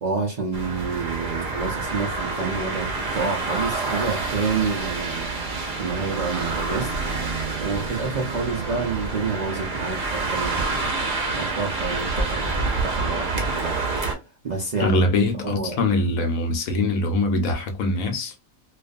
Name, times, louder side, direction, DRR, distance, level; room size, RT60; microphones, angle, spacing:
voice 1, 0.0-5.4 5.8-6.9 7.6-10.9 11.3-13.8 14.4-15.0 15.4-15.8, right 4 dB, 85° right, 0.3 m, -28 dB
sound 1, 0.5-14.1, right 3 dB, 45° right, 0.7 m, -27 dB
voice 2, 14.8-18.3, left 2 dB, 80° left, 1.0 m, -23 dB
2.4 x 2.3 x 2.4 m
omnidirectional pair, 1.5 m